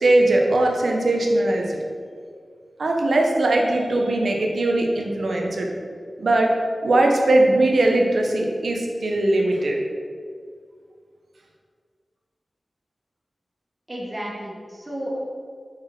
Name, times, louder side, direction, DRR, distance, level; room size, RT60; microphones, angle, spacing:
voice 1, 0.0-1.8 2.8-5.7 6.2-6.5 6.8-9.8, right 2 dB, 85° right, 1 dB, 1.2 m, -20 dB
voice 2, 13.9-15.2, equal, 30° right, -4 dB, 2.1 m, -32 dB
6.2 x 6.0 x 6.1 m, 2.1 s
wide cardioid pair, 80°, 0 cm